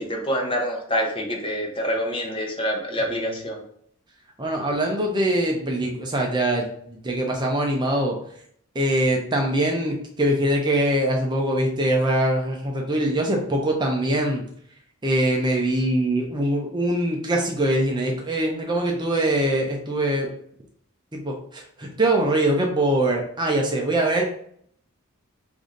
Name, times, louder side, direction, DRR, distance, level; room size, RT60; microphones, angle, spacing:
voice 1, 0.0-3.6, equal, 25° left, 0 dB, 0.9 m, -26 dB
voice 2, 3.0-3.4 4.4-8.2 8.7-14.4 15.0-20.3 21.1-24.2, right 1 dB, 20° right, 0 dB, 0.6 m, -23 dB
4.8 x 2.6 x 3.8 m, 0.65 s
head